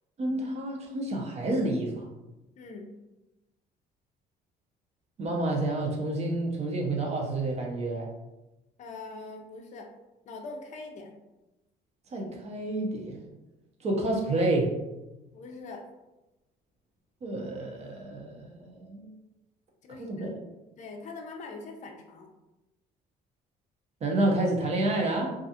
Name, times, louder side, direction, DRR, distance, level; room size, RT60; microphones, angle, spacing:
voice 1, 0.2-2.1 5.2-8.1 12.1-13.2 13.8-14.7 17.2-19.1 20.0-20.3 24.0-25.4, right 2 dB, 40° right, 0 dB, 0.6 m, -29 dB
voice 2, 2.6-2.9 8.8-9.9 10.3-11.1 15.3-15.9 19.8-20.3 20.8-22.3, left 3 dB, 45° left, 3 dB, 0.5 m, -42 dB
2.4 x 2.3 x 2.7 m, 1.0 s
cardioid pair, 110°, 17 cm